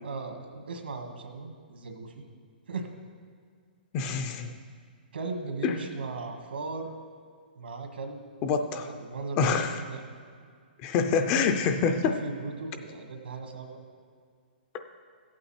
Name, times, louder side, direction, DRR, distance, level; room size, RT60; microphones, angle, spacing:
voice 1, 0.0-2.2 2.7-2.9 5.1-7.0 7.6-8.2 8.6-10.0 11.8-13.8, right 3 dB, 85° right, 4 dB, 1.8 m, -37 dB
voice 2, 3.9-4.5 5.6-5.8 8.4-8.9 9.4-9.8 10.8-12.2, left 5 dB, 20° left, 7 dB, 0.4 m, -26 dB
14.0 x 8.5 x 4.3 m, 2.1 s
hypercardioid pair, 175°, 6 cm